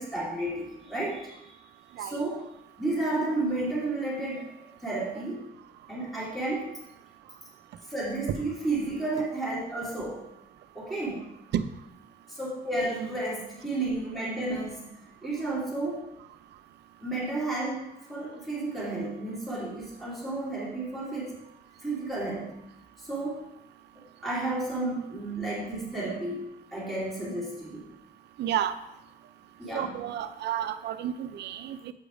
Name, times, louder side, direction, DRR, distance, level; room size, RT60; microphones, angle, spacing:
voice 1, 0.0-1.6 2.0-2.4 2.8-5.5 5.9-6.8 7.9-10.2 10.7-11.2 12.3-14.9 15.2-16.1 17.0-21.3 21.8-22.5 23.0-23.4 24.2-27.9 29.6-30.0, right 2 dB, ahead, -7 dB, 2.6 m, -32 dB
voice 2, 28.4-28.8 29.7-31.9, right 10 dB, 80° right, 11 dB, 0.6 m, -31 dB
7.9 x 5.2 x 4.9 m, 0.88 s
wide cardioid pair, 175°, 17 cm